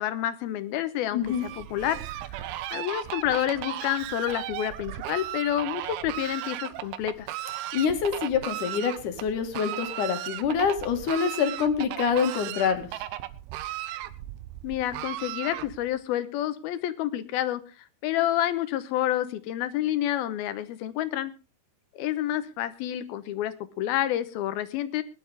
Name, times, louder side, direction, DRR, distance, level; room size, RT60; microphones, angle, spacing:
voice 1, 0.0-2.0 2.7-7.3 14.6-17.6 18.0-21.3 21.9-25.0, left 12 dB, 75° left, 13 dB, 2.7 m, -29 dB
voice 2, 1.1-1.5 7.7-12.9, left 6 dB, 55° left, 7 dB, 2.9 m, -26 dB
Fowl, 1.2-16.0, right 14 dB, 80° right, 2.6 m, -36 dB
20.5 x 11.5 x 3.4 m, 0.32 s
omnidirectional pair, 4.7 m